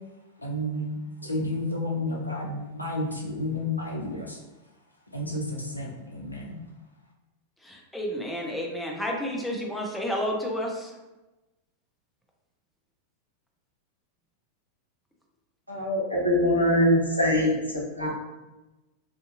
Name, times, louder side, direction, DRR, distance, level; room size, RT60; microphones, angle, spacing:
voice 1, 0.4-4.4 5.1-6.6, left 1 dB, 85° left, -1 dB, 0.5 m, -31 dB
voice 2, 7.6-10.9, equal, 5° left, 0 dB, 0.5 m, -31 dB
voice 3, 15.7-18.1, left 1 dB, 90° right, -5 dB, 0.7 m, -23 dB
2.6 x 2.5 x 2.4 m, 1.1 s
figure-of-eight pair, 90°, 0 cm